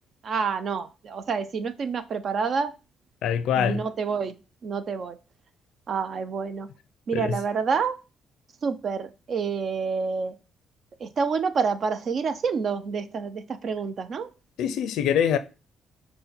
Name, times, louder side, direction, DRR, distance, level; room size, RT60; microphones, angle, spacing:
voice 1, 0.2-2.7 3.6-4.3 4.6-5.2 5.9-6.7 7.1-8.0 8.6-10.3 11.0-14.3, right 5 dB, 55° right, 0.5 m, -28 dB
voice 2, 3.2-3.8 7.1-7.3 14.6-15.4, left 8 dB, 85° left, 0.5 m, -24 dB
5.3 x 2.2 x 4.3 m
cardioid pair, 90°, 0 cm